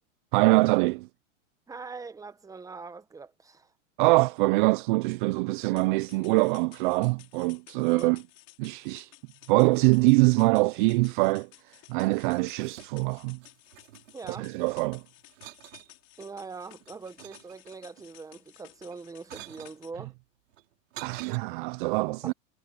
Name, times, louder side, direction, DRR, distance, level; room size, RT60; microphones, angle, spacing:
voice 1, 0.3-1.1 4.0-8.2 8.6-9.1 9.5-13.4 14.3-15.0 21.0-22.3, right 24 dB, 40° right, 0.5 m, -24 dB
voice 2, 1.7-3.7 7.8-8.2 14.1-14.5 16.2-20.1 22.2-22.3, right 4 dB, 10° right, 1.3 m, -42 dB
sound 1, 5.8-19.9, left 19 dB, 40° left, 4.8 m, -55 dB
sound 2, 12.2-13.2 13.4-14.8 15.3-15.9 16.5-18.0 18.8-19.8 20.5-21.4, right 15 dB, 70° right, 6.0 m, -48 dB
hypercardioid pair, 135°, 39 cm